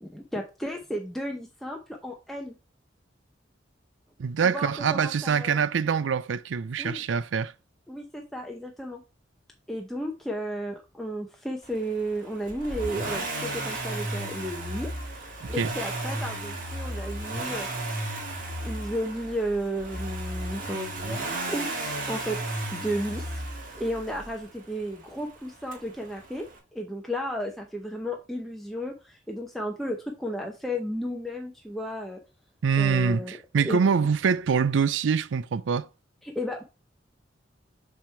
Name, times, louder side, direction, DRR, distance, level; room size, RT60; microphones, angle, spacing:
voice 1, 0.0-2.5 4.4-5.7 6.8-7.0 7.9-9.0 9.7-14.9 15.1-17.7 18.6-22.4 22.7-23.4 23.8-32.2 32.8-33.8 36.2-36.7, equal, ahead, 0.7 m, -33 dB
voice 2, 4.2-7.5 15.4-15.7 32.6-35.9, right 6 dB, 90° right, 0.4 m, -25 dB
Accelerating revving vroom, 12.5-24.4 25.7-25.8, right 2 dB, 45° right, 1.9 m, -33 dB
7.4 x 3.6 x 4.5 m
head